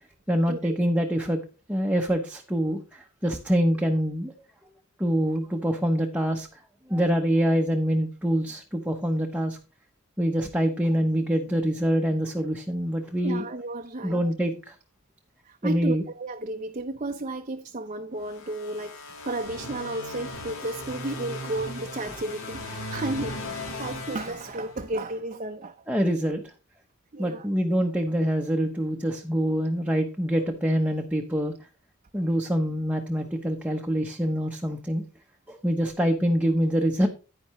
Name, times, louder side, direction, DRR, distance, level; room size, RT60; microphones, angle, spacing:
voice 1, 0.3-1.4 1.7-4.3 5.0-6.6 6.9-9.6 10.2-13.4 14.0-14.7 15.6-16.0 22.0-22.2 25.9-26.5 27.2-31.7 32.1-35.0 35.5-37.1, equal, 5° right, 0.9 m, -25 dB
voice 2, 13.2-14.2 15.4-25.8 27.1-27.5 32.2-32.3, right 2 dB, 35° right, 0.7 m, -33 dB
sound 1, 18.2-25.1, left 2 dB, 65° left, 3.1 m, -37 dB
10.0 x 9.7 x 3.1 m
head